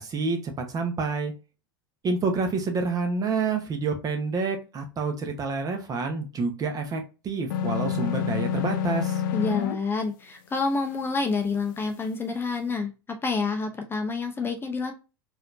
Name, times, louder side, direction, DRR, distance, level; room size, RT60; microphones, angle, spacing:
voice 1, 0.0-1.3 2.0-9.2, right 4 dB, 30° right, 4 dB, 1.0 m, -28 dB
sound 1, 7.5-9.8, left 8 dB, 65° left, 0.4 m, -27 dB
voice 2, 9.3-14.9, left 4 dB, 20° left, 4 dB, 0.6 m, -28 dB
4.2 x 2.7 x 2.6 m, 0.30 s
hypercardioid pair, 90°, 12 cm